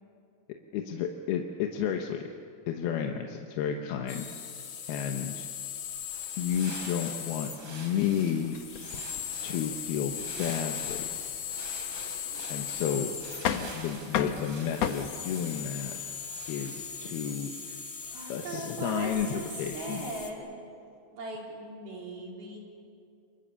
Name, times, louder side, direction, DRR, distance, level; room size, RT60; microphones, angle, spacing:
voice 1, 0.7-2.3 2.7-4.3 4.9-5.5 6.4-8.6 9.4-11.1 12.5-13.1 13.6-16.0 16.5-17.8 18.3-20.1, left 8 dB, 85° left, 3 dB, 3.0 m, -32 dB
sound 1, 4.1-20.3, left 8 dB, 50° left, 1.7 m, -39 dB
sound 2, 5.9-17.0, right 2 dB, 30° right, 4.5 m, -46 dB
sound 3, 8.4-14.9, left 8 dB, 70° left, 1.6 m, -36 dB
voice 2, 18.1-20.5 21.1-22.6, right 2 dB, 75° right, -1 dB, 5.9 m, -39 dB
29.0 x 24.0 x 7.0 m, 2.5 s
omnidirectional pair, 4.4 m